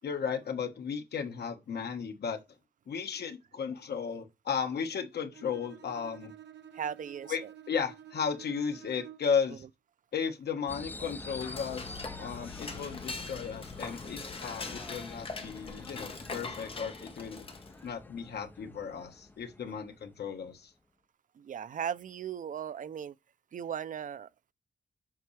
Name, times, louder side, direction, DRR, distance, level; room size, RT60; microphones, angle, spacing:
voice 1, 0.0-2.4 2.9-6.3 7.3-7.4 7.7-9.6 10.1-17.4 17.8-20.7, left 6 dB, 70° left, 1.5 m, -35 dB
Bowed string instrument, 5.3-9.4, right 10 dB, 80° right, 0.8 m, -51 dB
voice 2, 6.7-7.4 9.5-9.6 21.4-23.2 23.5-24.3, right 8 dB, 50° right, 0.5 m, -37 dB
sound 1, 10.7-20.6, left 2 dB, 10° left, 0.4 m, -47 dB
Dishes pots and pans / Cutlery silverware, 11.0-17.9, left 4 dB, 30° left, 1.3 m, -43 dB
8.0 x 5.5 x 3.3 m
wide cardioid pair, 170°, 18 cm